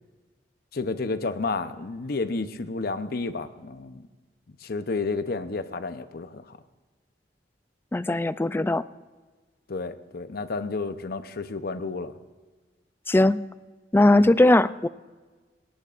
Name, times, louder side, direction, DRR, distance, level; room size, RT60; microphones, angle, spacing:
voice 1, 0.7-4.0 4.6-6.6 9.7-12.1 14.1-14.4, left 3 dB, 60° left, 11 dB, 0.8 m, -31 dB
voice 2, 7.9-8.8 13.1-13.4 13.9-14.9, left 2 dB, 15° left, 15 dB, 0.3 m, -19 dB
20.0 x 17.5 x 2.5 m, 1.3 s
head